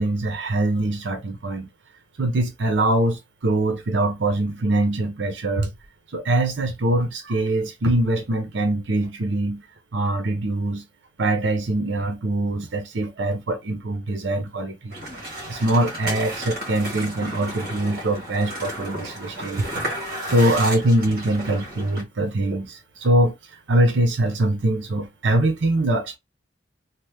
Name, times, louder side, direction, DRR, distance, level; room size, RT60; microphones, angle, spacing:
voice 1, 0.0-1.7 2.2-5.7 6.1-9.6 9.9-10.8 11.2-15.0 15.5-19.7 20.3-23.3 23.7-26.2, right 1 dB, 80° right, 0.7 m, -23 dB
sound 1, 14.9-22.0, right 1 dB, 55° right, 1.3 m, -33 dB
2.9 x 2.1 x 3.3 m
head